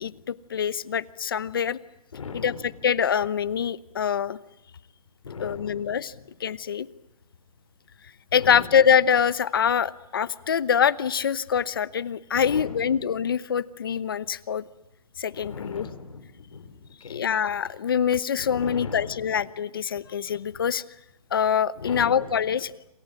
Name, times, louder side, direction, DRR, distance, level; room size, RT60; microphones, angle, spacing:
voice 1, 0.0-1.8 2.3-2.5 2.8-4.4 5.4-6.1 6.4-6.9 8.3-14.6 15.2-15.9 17.1-20.8 21.3-22.7, left 7 dB, 40° left, 18 dB, 0.9 m, -24 dB
voice 2, 2.1-2.7 5.2-6.3 8.3-8.8 12.3-13.0 15.3-17.2 18.4-19.4 20.5-20.6 21.8-22.3, left 5 dB, 65° left, 9 dB, 4.9 m, -39 dB
28.0 x 27.0 x 7.2 m, 0.85 s
hypercardioid pair, 175°, 19 cm